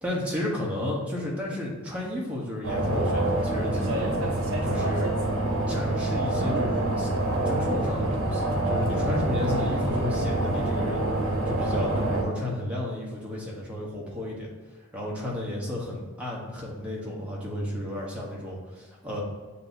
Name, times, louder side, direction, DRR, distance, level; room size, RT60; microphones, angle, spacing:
voice 1, 0.0-5.1 5.7-7.1 7.4-11.0 11.4-14.5 14.9-19.2, left 1 dB, 5° right, -4 dB, 1.0 m, -32 dB
sound 1, 2.6-12.2, right 2 dB, 70° right, 0.8 m, -26 dB
sound 2, 3.7-4.2 6.4-6.7 8.1-8.2 9.4-10.0, right 1 dB, 25° right, 0.4 m, -35 dB
7.4 x 2.7 x 2.6 m, 1.4 s
head